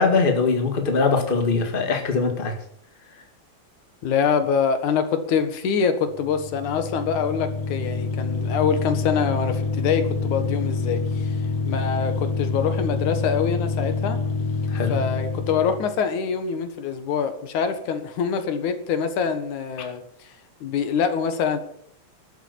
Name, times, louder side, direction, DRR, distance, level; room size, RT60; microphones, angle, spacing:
voice 1, 0.0-2.6 14.7-14.9, left 4 dB, 20° left, 4 dB, 1.7 m, -21 dB
voice 2, 4.0-11.4 11.7-14.2 14.9-20.3 20.6-21.6, left 6 dB, 85° left, 9 dB, 2.9 m, -25 dB
sound 1, 6.1-16.0, left 4 dB, 55° left, 2.8 m, -27 dB
12.5 x 8.1 x 8.5 m, 0.67 s
omnidirectional pair, 3.4 m